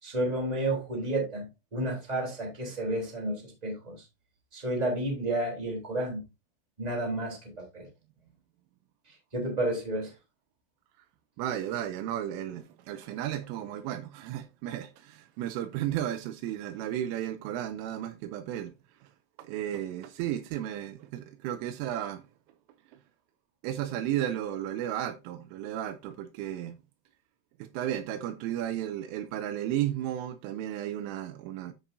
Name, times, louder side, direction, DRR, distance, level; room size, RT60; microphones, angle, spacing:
voice 1, 0.0-1.5 1.7-4.0 4.5-6.2 6.8-7.9 9.3-10.1, right 1 dB, 10° right, 2.8 m, -31 dB
voice 2, 11.4-18.7 19.0-19.1 19.4-22.2 23.6-26.8 27.6-31.7, right 11 dB, 85° right, 3.2 m, -34 dB
13.5 x 5.8 x 2.7 m
omnidirectional pair, 5.9 m